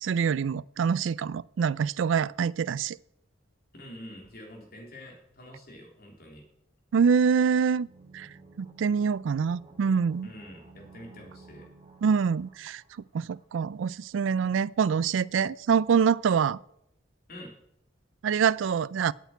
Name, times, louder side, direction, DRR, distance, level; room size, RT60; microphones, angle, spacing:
voice 1, 0.0-3.0 6.9-7.9 8.1-8.3 8.6-10.3 12.0-12.8 13.1-16.6 18.2-19.1, right 6 dB, 70° right, 0.4 m, -25 dB
voice 2, 3.8-6.4 10.2-11.7 17.3-17.5, left 1 dB, 50° left, 3.5 m, -46 dB
sound 1, 7.7-13.4 13.7-13.8, right 4 dB, 30° right, 1.6 m, -53 dB
8.9 x 8.0 x 9.2 m
head